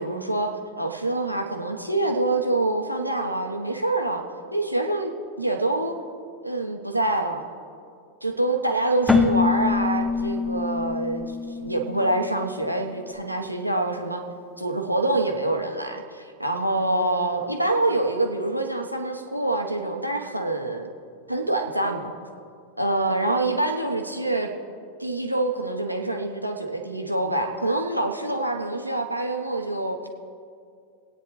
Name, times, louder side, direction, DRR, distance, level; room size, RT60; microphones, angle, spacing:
voice 1, 0.0-4.3 4.5-5.9 6.4-7.4 8.2-14.2 14.6-20.9 21.3-22.1 22.8-24.5 25.0-30.1, right 2 dB, 90° right, 3 dB, 1.1 m, -26 dB
Keyboard (musical), 9.1-12.7, left 5 dB, 5° left, 0.6 m, -25 dB
22.5 x 9.1 x 3.2 m, 2.3 s
figure-of-eight pair, 90°, 0 cm